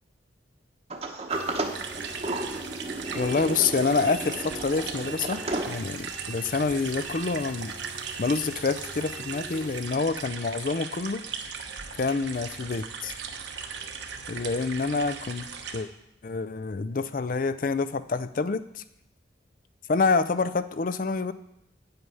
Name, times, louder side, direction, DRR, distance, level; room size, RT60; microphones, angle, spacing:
Sliding door, 0.9-6.3, right 2 dB, 35° right, 0.9 m, -33 dB
sound 1, 1.3-9.9, right 3 dB, 85° right, 2.5 m, -43 dB
sound 2, 1.7-15.8, right 6 dB, 70° right, 1.0 m, -38 dB
voice 1, 3.1-5.4 5.7-7.7 8.2-11.2 12.0-13.2 14.3-15.5 15.7-15.9 16.2-18.8 19.9-21.3, left 4 dB, 45° left, 13 dB, 0.4 m, -27 dB
9.5 x 7.9 x 5.5 m, 0.80 s
head